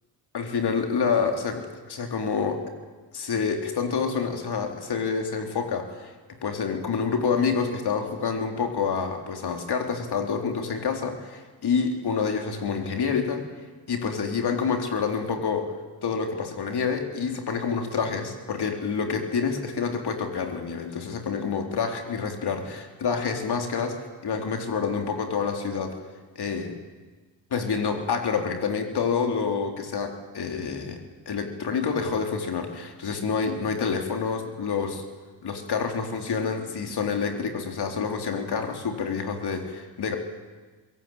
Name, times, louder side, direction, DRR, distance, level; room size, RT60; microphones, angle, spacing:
voice 1, 0.3-2.6 3.1-6.1 6.4-13.5 13.9-15.7 16.0-26.0 26.4-26.8 27.5-35.0 35.4-40.2, left 5 dB, 55° left, 3 dB, 3.8 m, -28 dB
22.0 x 17.5 x 9.0 m, 1.3 s
supercardioid pair, 60°, 48 cm